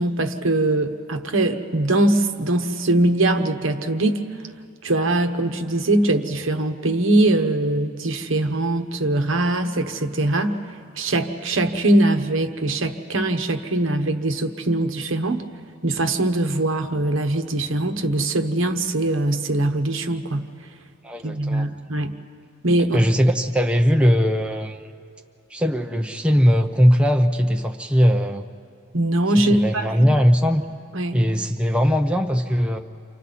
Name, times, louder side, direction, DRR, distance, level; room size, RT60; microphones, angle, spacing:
voice 1, 0.0-4.2 4.8-10.5 11.0-15.4 15.8-20.5 21.2-22.1 22.6-23.0 28.9-29.9 30.9-31.2, right 1 dB, 65° right, 7 dB, 1.1 m, -22 dB
voice 2, 21.0-21.7 22.8-24.8 25.5-28.5 29.5-30.6 31.1-32.8, equal, 5° right, 3 dB, 0.6 m, -19 dB
29.5 x 26.0 x 4.2 m, 2.3 s
head